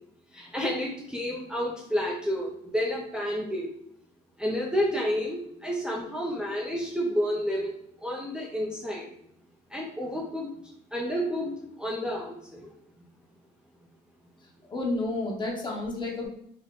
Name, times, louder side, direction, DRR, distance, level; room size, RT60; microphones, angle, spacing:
voice 1, 0.3-3.7 4.4-7.7 8.0-9.1 9.7-10.5 10.9-12.7, equal, 5° right, -4 dB, 0.5 m, -30 dB
voice 2, 14.7-16.3, left 2 dB, 25° left, 0 dB, 1.0 m, -30 dB
3.5 x 2.1 x 3.7 m, 0.72 s
cardioid pair, 110°, 17 cm